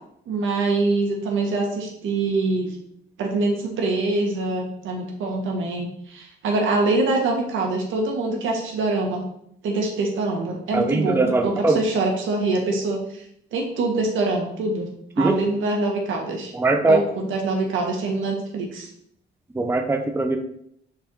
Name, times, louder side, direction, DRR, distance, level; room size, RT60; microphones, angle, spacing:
voice 1, 0.3-2.7 3.2-9.2 9.6-13.2 13.5-14.9 15.2-16.5 16.9-18.9, right 3 dB, 80° right, 1 dB, 1.7 m, -24 dB
voice 2, 10.7-11.8 15.2-15.3 16.5-17.0 19.5-20.4, right 2 dB, 10° right, 5 dB, 0.6 m, -20 dB
5.7 x 4.5 x 3.8 m, 0.71 s
cardioid pair, 90°, 20 cm